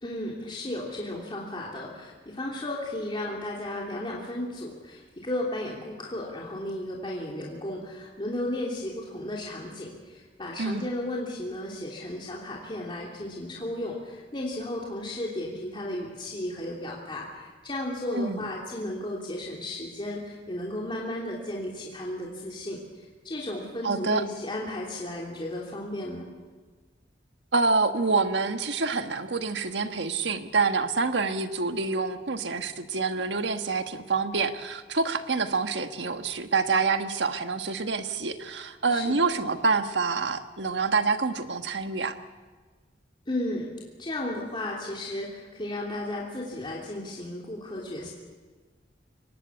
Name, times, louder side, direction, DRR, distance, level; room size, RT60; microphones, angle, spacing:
voice 1, 0.0-22.8 23.2-26.2 38.9-39.2 43.3-43.7 44.0-48.1, left 1 dB, 30° left, -3 dB, 3.0 m, -34 dB
voice 2, 10.6-10.9 18.1-18.5 23.8-24.2 27.5-42.2, right 4 dB, 80° right, 8 dB, 1.4 m, -27 dB
24.0 x 19.5 x 8.3 m, 1.4 s
head